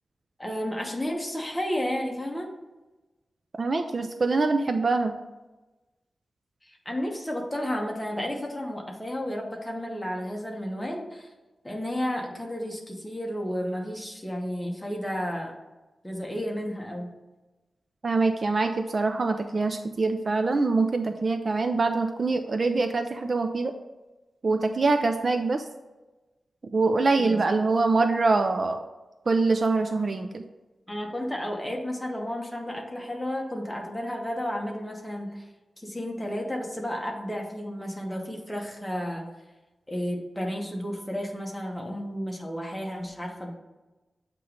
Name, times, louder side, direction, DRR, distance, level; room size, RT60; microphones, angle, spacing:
voice 1, 0.4-2.5 6.6-11.3 11.6-15.5 16.0-17.1 27.3-27.6 30.9-35.5 35.8-39.3 39.9-43.5, equal, 5° left, 0 dB, 0.9 m, -32 dB
voice 2, 3.6-5.1 18.0-23.7 24.4-25.6 26.7-28.8 29.3-30.4, right 3 dB, 40° right, 7 dB, 0.3 m, -24 dB
7.4 x 3.0 x 5.0 m, 1.1 s
wide cardioid pair, 180°, 0 cm